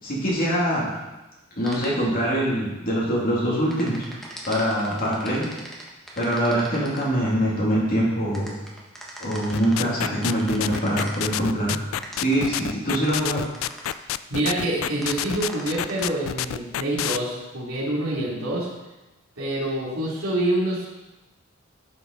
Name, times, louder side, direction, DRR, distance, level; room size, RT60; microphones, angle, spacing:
voice 1, 0.0-0.9 1.6-4.0 4.5-5.4 6.2-8.5 9.2-11.8 12.1-13.4, equal, 45° left, -5 dB, 2.7 m, -23 dB
sound 1, 1.6-1.9 3.7-7.1 8.3-11.3 12.0-14.0 15.0-16.0, right 1 dB, ahead, 1.3 m, -40 dB
sound 2, 9.5-17.2, left 11 dB, 70° left, 0.3 m, -28 dB
voice 2, 14.3-18.7 19.4-20.9, right 1 dB, 85° right, -4 dB, 3.2 m, -26 dB
11.5 x 5.9 x 4.1 m, 1.1 s
head